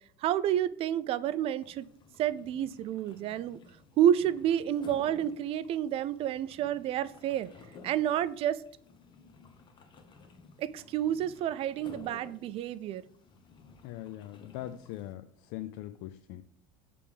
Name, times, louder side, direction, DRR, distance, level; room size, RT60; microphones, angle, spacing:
voice 1, 0.2-1.9 2.2-3.6 4.0-7.5 7.8-8.6 10.6-13.0, right 10 dB, 45° right, 17 dB, 0.4 m, -29 dB
sound 1, 1.6-15.1, left 4 dB, 35° left, 1.0 m, -55 dB
voice 2, 13.8-16.4, left 13 dB, 65° left, 10 dB, 0.4 m, -41 dB
6.9 x 3.4 x 5.1 m, 0.65 s
supercardioid pair, 110°, 14 cm